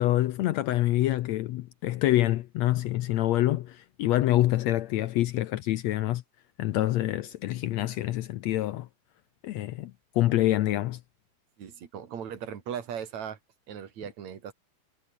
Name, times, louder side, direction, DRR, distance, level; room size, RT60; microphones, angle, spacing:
voice 1, 0.0-6.2 6.6-8.9 9.4-11.0, left 15 dB, 75° left, 1.7 m, -26 dB
voice 2, 11.6-13.4 13.7-14.5, right 8 dB, 60° right, 3.8 m, -38 dB
omnidirectional pair, 3.7 m